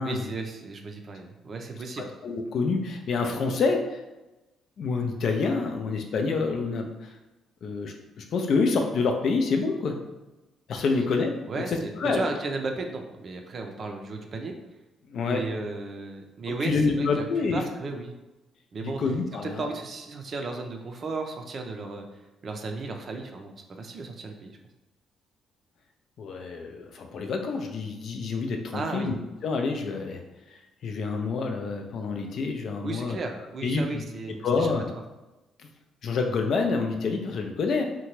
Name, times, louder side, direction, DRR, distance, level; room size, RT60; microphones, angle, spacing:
voice 1, 0.0-2.1 11.5-14.5 15.2-17.2 17.5-18.1 18.7-19.0 19.4-22.1 22.4-24.6 28.7-29.1 32.8-34.7, right 3 dB, 50° right, 3 dB, 0.5 m, -35 dB
voice 2, 2.0-4.0 4.8-7.1 7.6-10.0 10.7-11.3 11.7-12.2 15.1-15.5 16.5-17.6 18.8-19.7 26.2-29.2 29.4-30.2 30.5-33.2 33.6-34.0 34.4-34.9 36.0-37.8, left 4 dB, 60° left, 4 dB, 0.4 m, -27 dB
2.7 x 2.2 x 3.0 m, 1.0 s
hypercardioid pair, 50°, 0 cm